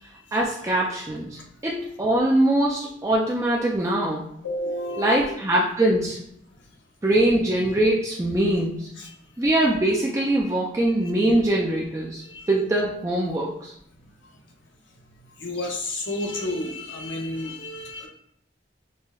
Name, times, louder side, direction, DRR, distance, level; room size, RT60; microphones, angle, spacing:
voice 1, 0.3-1.3 1.6-4.2 5.0-6.2 7.0-8.9 9.4-12.2 12.5-13.7, right 1 dB, 15° right, -3 dB, 0.3 m, -22 dB
voice 2, 4.4-5.3 9.0-9.2 11.0-11.1 12.2-12.5 15.4-18.1, left 1 dB, 75° left, 1 dB, 0.7 m, -31 dB
5.4 x 2.1 x 2.3 m, 0.73 s
head